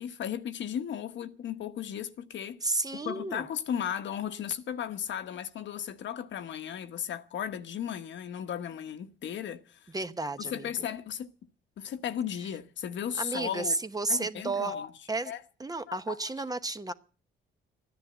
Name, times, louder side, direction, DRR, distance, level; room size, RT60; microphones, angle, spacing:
voice 1, 0.0-2.8 3.0-9.9 10.4-11.3 11.8-13.8 14.1-14.9 15.2-15.4 15.9-16.2, left 9 dB, 70° left, 1.2 m, -35 dB
voice 2, 2.6-3.5 9.9-10.7 13.2-14.8 15.1-15.3 15.6-16.9, right 3 dB, 20° right, 1.0 m, -32 dB
14.0 x 10.5 x 8.0 m
cardioid pair, 90°, 20 cm